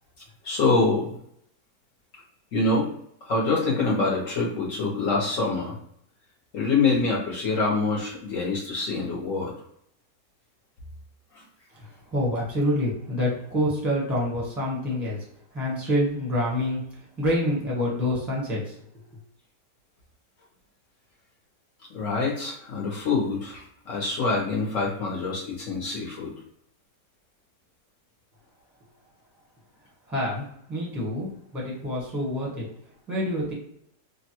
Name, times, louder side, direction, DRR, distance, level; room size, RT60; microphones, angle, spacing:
voice 1, 0.4-1.2 2.5-2.9 3.2-5.8 6.5-9.5 21.9-26.3, left 3 dB, 60° left, -3 dB, 1.0 m, -25 dB
voice 2, 11.7-15.2 15.5-16.8 17.2-18.8 30.1-32.6 33.1-33.5, equal, ahead, -4 dB, 0.8 m, -27 dB
3.2 x 2.2 x 2.9 m, 0.71 s
omnidirectional pair, 1.8 m